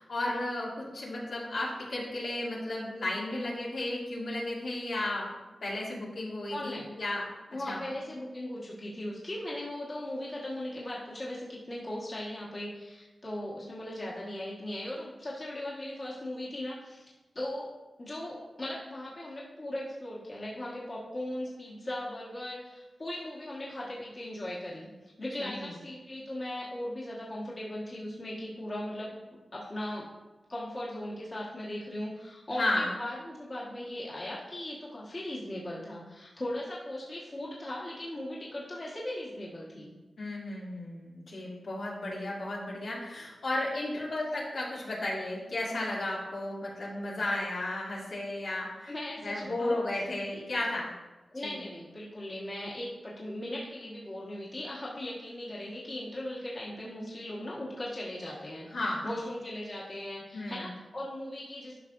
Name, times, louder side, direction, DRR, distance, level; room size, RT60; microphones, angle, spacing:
voice 1, 0.0-5.3 5.6-7.3 7.7-7.8 25.4-25.7 32.6-32.9 40.2-48.9 49.2-50.9 51.4-51.5 58.7-59.1 60.3-60.7, left 1 dB, 75° left, -6 dB, 2.4 m, -34 dB
voice 2, 6.5-6.9 7.5-17.7 18.0-29.1 29.5-30.1 30.5-39.9 48.9-50.0 50.3-50.4 51.3-61.8, left 1 dB, 30° left, -6 dB, 1.4 m, -38 dB
11.5 x 5.8 x 2.6 m, 1.2 s
wide cardioid pair, 135°, 0 cm